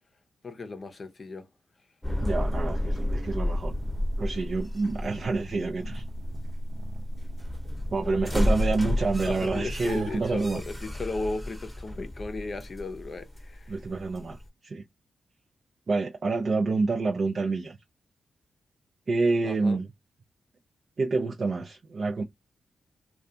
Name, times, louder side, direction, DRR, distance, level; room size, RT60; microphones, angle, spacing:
voice 1, 0.4-1.5 9.3-13.8 19.4-19.8, left 3 dB, 50° left, 0.6 m, -35 dB
sound 1, 2.0-14.5, left 1 dB, 5° left, 0.9 m, -31 dB
voice 2, 2.2-3.7 4.2-6.0 7.9-10.6 13.7-14.8 15.9-17.8 19.1-19.9 21.0-22.2, right 3 dB, 55° right, 0.5 m, -28 dB
sound 2, 3.4-10.9, right 3 dB, 85° right, 0.8 m, -47 dB
2.3 x 2.3 x 2.7 m
supercardioid pair, 40°, 0 cm